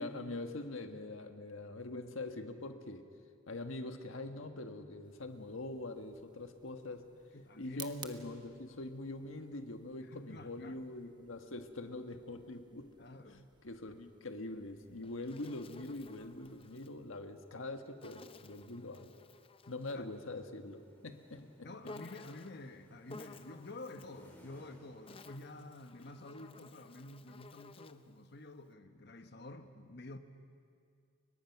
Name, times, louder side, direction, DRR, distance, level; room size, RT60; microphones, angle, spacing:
voice 1, 0.0-3.1 3.5-7.1 7.6-12.9 13.6-19.1 19.7-21.9 26.0-26.1, left 2 dB, 85° left, 6 dB, 1.6 m, -43 dB
sound 1, 5.0-16.7, right 6 dB, 20° right, 1.2 m, -58 dB
voice 2, 7.3-7.9 10.1-11.1 13.0-13.5 19.9-20.1 21.6-30.2, left 2 dB, 55° left, 8 dB, 1.3 m, -50 dB
Insect, 14.8-17.0 18.0-20.1 21.8-22.7 23.1-24.2 24.9-28.1, left 3 dB, 25° left, 0.6 m, -54 dB
sound 2, 19.6-26.1, equal, 10° left, 3.9 m, -64 dB
30.0 x 23.0 x 6.0 m, 2.3 s
head